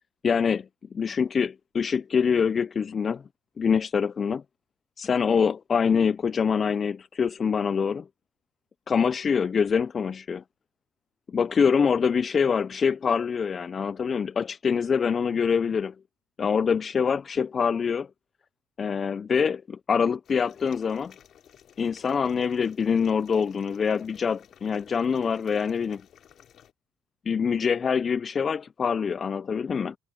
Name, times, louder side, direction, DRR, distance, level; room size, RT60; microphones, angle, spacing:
voice 1, 0.2-0.7 0.9-3.2 3.6-4.4 5.0-8.1 8.9-10.4 11.3-15.9 16.4-18.1 18.8-21.1 21.8-26.0 27.3-30.0, left 6 dB, 35° left, 0.4 m, -25 dB
sound 1, 20.2-26.7, left 9 dB, 50° left, 3.1 m, -54 dB
cardioid pair, 100°, 0 cm